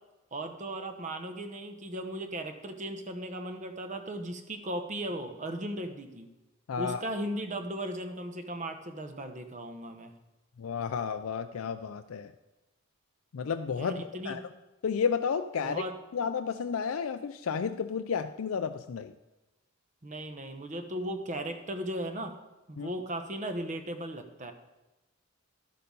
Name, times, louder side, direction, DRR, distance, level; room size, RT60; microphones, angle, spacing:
voice 1, 0.3-6.3 6.8-10.1 13.8-14.4 15.6-15.9 20.0-22.3 22.7-24.5, right 1 dB, 35° right, 7 dB, 0.9 m, -37 dB
voice 2, 6.7-7.0 10.6-12.3 13.3-14.4 14.8-15.8 16.1-19.1 22.8-22.9, left 6 dB, 80° left, 8 dB, 0.4 m, -32 dB
13.0 x 6.8 x 5.3 m, 1.1 s
head